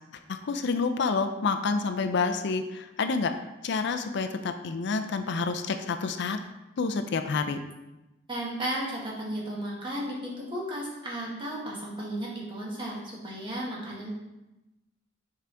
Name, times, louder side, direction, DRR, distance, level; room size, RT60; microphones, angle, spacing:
voice 1, 0.3-3.3 3.6-6.4 6.8-7.6, left 4 dB, 65° left, 7 dB, 0.5 m, -28 dB
voice 2, 8.3-14.1, right 1 dB, 25° right, -5 dB, 1.7 m, -34 dB
7.5 x 4.9 x 3.4 m, 0.99 s
head